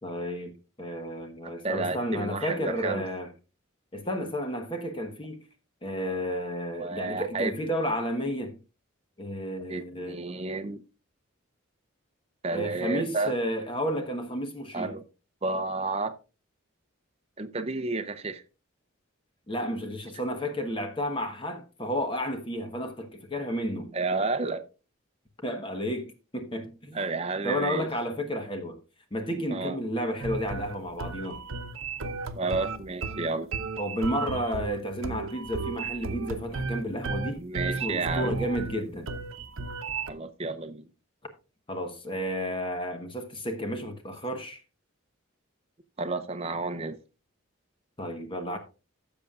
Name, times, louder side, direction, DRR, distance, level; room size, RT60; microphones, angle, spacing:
voice 1, 0.0-3.3 3.9-5.5 5.8-8.6 9.2-10.2 12.5-15.0 19.5-23.9 25.4-27.0 27.4-28.8 29.1-31.4 33.8-37.4 37.8-39.1 41.7-44.6 48.0-48.6, equal, 25° left, 1.1 m, -32 dB
voice 2, 1.4-3.0 6.8-7.5 9.7-10.8 12.4-13.3 14.7-15.0 15.4-16.1 17.4-18.4 23.9-24.6 26.9-27.9 29.5-29.8 32.3-33.5 37.4-38.3 40.1-40.9 46.0-47.0, right 3 dB, 30° right, 0.6 m, -31 dB
sound 1, 30.2-40.1, right 4 dB, 75° right, 0.8 m, -34 dB
15.5 x 7.0 x 2.4 m
head